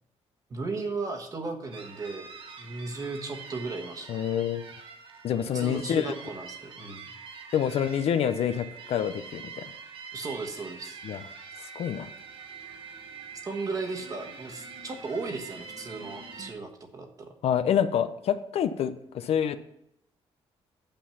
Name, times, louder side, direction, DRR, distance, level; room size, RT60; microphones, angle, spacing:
voice 1, 0.5-2.3 2.6-4.2 5.5-7.1 10.1-11.0 13.4-17.3, right 3 dB, 30° right, 3 dB, 1.4 m, -36 dB
sound 1, 1.7-16.5, right 5 dB, 50° right, 1.4 m, -45 dB
voice 2, 4.1-4.6 5.2-6.1 7.5-9.7 11.0-11.2 11.6-12.1 17.4-19.6, left 9 dB, 60° left, 11 dB, 0.6 m, -27 dB
9.0 x 7.2 x 5.7 m, 0.79 s
cardioid pair, 170°, 11 cm